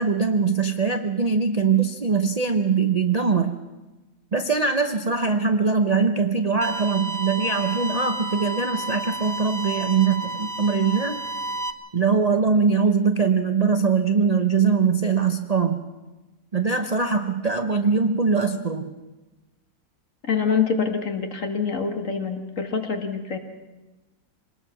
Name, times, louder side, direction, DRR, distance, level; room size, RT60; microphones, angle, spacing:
voice 1, 0.0-3.5 4.3-11.2 11.9-15.8 16.5-18.9, right 5 dB, 60° right, 6 dB, 0.4 m, -22 dB
sound 1, 6.6-11.7, right 2 dB, ahead, 0.8 m, -31 dB
voice 2, 20.3-23.4, left 6 dB, 45° left, 5 dB, 2.0 m, -25 dB
25.0 x 20.0 x 5.9 m, 1.1 s
omnidirectional pair, 2.1 m